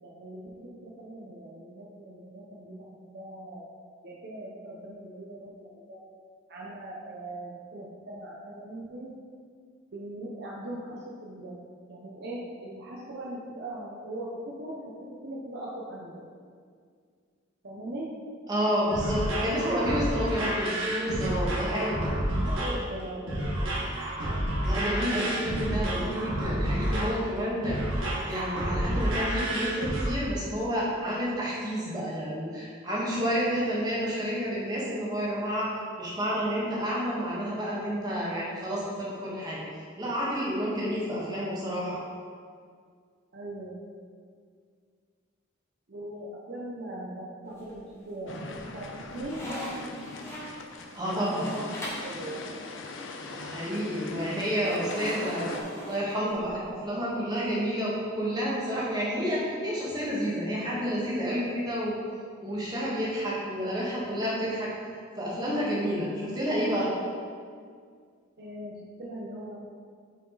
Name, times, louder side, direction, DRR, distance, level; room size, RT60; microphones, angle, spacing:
voice 1, 0.0-3.7 4.0-6.0 6.5-9.1 9.9-14.9 15.2-16.3 17.6-18.1 18.8-19.1 21.6-21.8 22.4-23.6 24.8-25.1 43.3-43.8 45.9-48.9 49.1-49.4 51.1-51.7 52.0-52.4 68.4-69.5, right 1 dB, 50° right, -4 dB, 0.7 m, -40 dB
voice 2, 18.5-22.0 24.6-35.7 36.0-39.6 40.0-42.0 50.9-51.5 53.2-55.5 55.9-61.9 62.4-64.7 65.1-66.9, equal, 20° right, -6 dB, 1.4 m, -30 dB
sound 1, 18.6-30.1, right 1 dB, 75° right, 1.4 m, -29 dB
sound 2, 47.5-48.1 48.5-52.2 54.6-56.7, equal, 15° left, 1.1 m, -40 dB
sound 3, 48.3-55.6, left 3 dB, 65° left, 0.6 m, -41 dB
6.0 x 4.7 x 3.9 m, 2.1 s
head